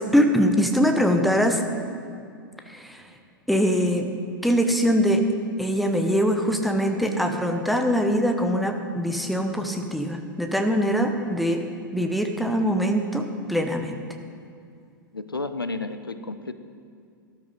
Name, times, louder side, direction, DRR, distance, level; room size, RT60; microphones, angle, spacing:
voice 1, 0.0-1.6 2.7-3.0 3.5-4.1 4.4-5.3 5.6-11.6 11.9-14.0, equal, ahead, 4 dB, 0.9 m, -23 dB
voice 2, 15.1-16.5, left 3 dB, 85° left, 10 dB, 0.6 m, -32 dB
13.0 x 12.0 x 3.9 m, 2.4 s
figure-of-eight pair, 100°, 12 cm